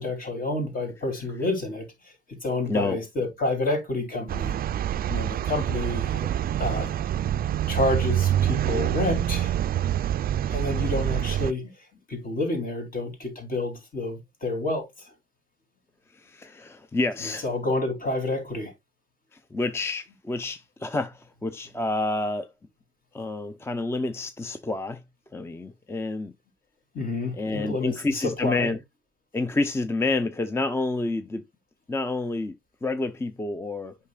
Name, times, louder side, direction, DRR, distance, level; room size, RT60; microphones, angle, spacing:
voice 1, 0.0-1.9 2.3-4.5 5.1-6.2 6.6-6.9 7.7-9.5 10.5-11.7 12.1-14.9 17.4-18.7 26.9-28.7, left 2 dB, 45° left, 3.0 m, -29 dB
voice 2, 2.7-3.0 16.1-17.5 19.3-22.5 23.1-25.0 25.3-26.3 27.4-28.8 29.3-31.4 31.9-32.6 32.8-33.9, left 2 dB, 10° left, 0.5 m, -29 dB
sound 1, 4.3-11.5, right 11 dB, 50° right, 0.4 m, -26 dB
8.3 x 5.7 x 2.3 m
cardioid pair, 90°, 20 cm